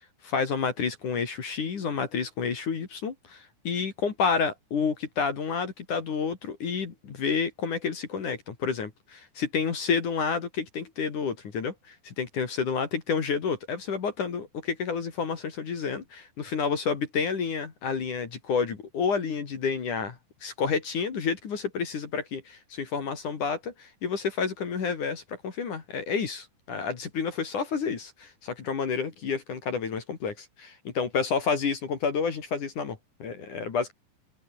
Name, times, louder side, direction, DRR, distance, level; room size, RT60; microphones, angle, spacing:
voice 1, 0.2-33.9, left 5 dB, 50° left, 3.9 m, -30 dB
open air
omnidirectional pair, 5.2 m